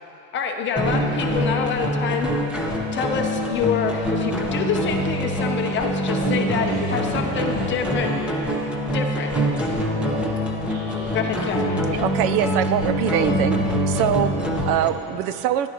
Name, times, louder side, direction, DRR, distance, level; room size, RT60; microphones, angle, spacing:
voice 1, 0.3-2.3 2.9-8.1 8.9-9.3 9.6-9.8 11.1-12.0, left 6 dB, 30° left, 2 dB, 0.6 m, -26 dB
sound 1, 0.8-14.9, equal, 5° right, 0.8 m, -24 dB
voice 2, 6.4-8.6 9.2-9.3 10.7-11.2, right 1 dB, 70° right, -6 dB, 2.2 m, -39 dB
voice 3, 12.0-15.7, right 10 dB, 55° right, 12 dB, 0.5 m, -23 dB
27.0 x 11.0 x 2.9 m, 2.9 s
cardioid pair, 175°, 41 cm